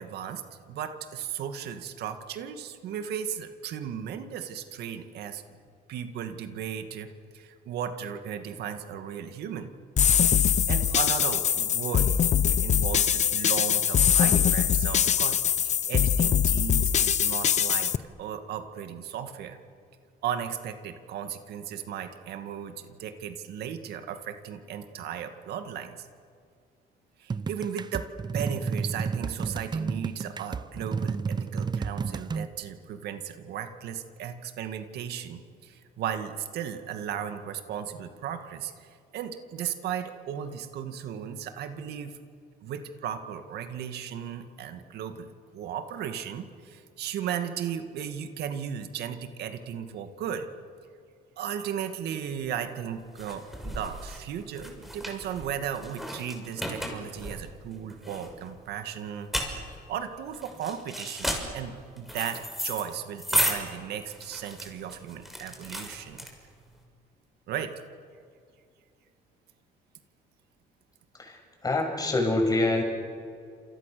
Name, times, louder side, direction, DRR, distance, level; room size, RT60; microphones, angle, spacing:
voice 1, 0.0-5.4 5.9-9.7 10.7-15.4 15.6-17.9 18.2-19.6 20.2-26.1 27.2-28.1 28.3-42.2 42.6-45.3 45.5-50.5 51.4-59.3 59.9-66.3 67.5-67.7, right 8 dB, 75° right, 7 dB, 2.2 m, -36 dB
sound 1, 10.0-18.0, left 8 dB, 45° left, 0.9 m, -23 dB
sound 2, 27.3-32.5, right 5 dB, 25° right, 0.8 m, -31 dB
sound 3, 52.3-66.7, equal, ahead, 6.2 m, -34 dB
voice 2, 71.2-72.8, left 2 dB, 20° left, 2 dB, 7.5 m, -26 dB
30.0 x 28.5 x 6.9 m, 2.2 s
cardioid pair, 110°, 17 cm